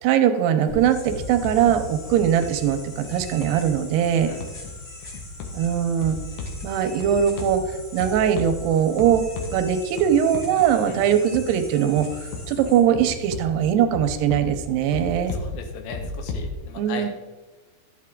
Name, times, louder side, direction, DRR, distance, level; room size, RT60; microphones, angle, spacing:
voice 1, 0.0-4.3 5.5-6.2 6.6-9.2 9.5-15.3 16.8-17.1, right 9 dB, 85° right, 8 dB, 2.7 m, -21 dB
sound 1, 0.6-13.5, left 1 dB, 35° left, 1.8 m, -43 dB
sound 2, 0.7-16.5, left 3 dB, 70° left, 2.8 m, -36 dB
voice 2, 15.4-17.1, left 5 dB, 85° left, 5 dB, 3.3 m, -37 dB
12.0 x 7.6 x 3.7 m, 1.2 s
omnidirectional pair, 4.8 m